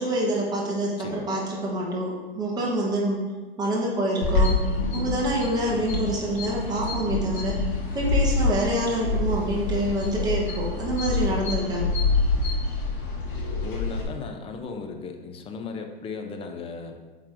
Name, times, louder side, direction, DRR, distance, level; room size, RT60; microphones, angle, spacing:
voice 1, 0.0-3.2 3.6-4.6 4.9-7.6 7.9-11.9, right 1 dB, 15° right, -4 dB, 1.2 m, -26 dB
voice 2, 1.0-1.3 13.6-17.0, left 4 dB, 20° left, 4 dB, 0.6 m, -36 dB
sound 1, 4.2-14.0, left 3 dB, 60° left, 1.9 m, -26 dB
8.6 x 3.8 x 3.0 m, 1.3 s
hypercardioid pair, 110°, 30 cm